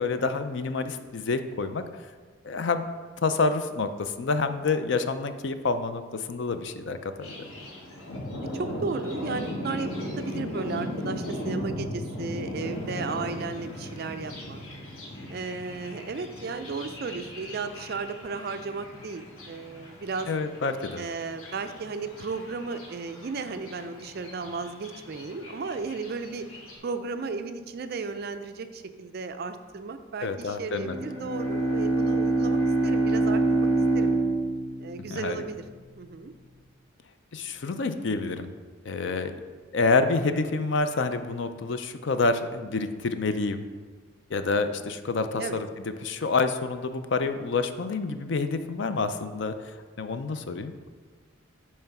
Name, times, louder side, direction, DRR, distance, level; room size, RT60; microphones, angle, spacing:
voice 1, 0.0-1.8 2.4-2.8 3.2-7.3 20.3-21.0 30.2-30.9 35.1-35.4 37.3-38.5 38.8-39.3 39.7-43.6 44.3-49.5 50.0-50.7, left 4 dB, 60° left, 9 dB, 0.4 m, -28 dB
Thunder, 7.2-26.8, left 1 dB, 90° left, 1.6 m, -38 dB
voice 2, 8.5-14.6 15.3-20.3 21.0-26.5 26.8-33.7 33.9-34.2 34.8-35.6 36.0-36.3 45.4-45.6, right 4 dB, 50° right, 9 dB, 0.4 m, -34 dB
Bowed string instrument, 30.8-35.5, right 2 dB, 15° left, 1.2 m, -25 dB
8.9 x 3.2 x 5.9 m, 1.4 s
head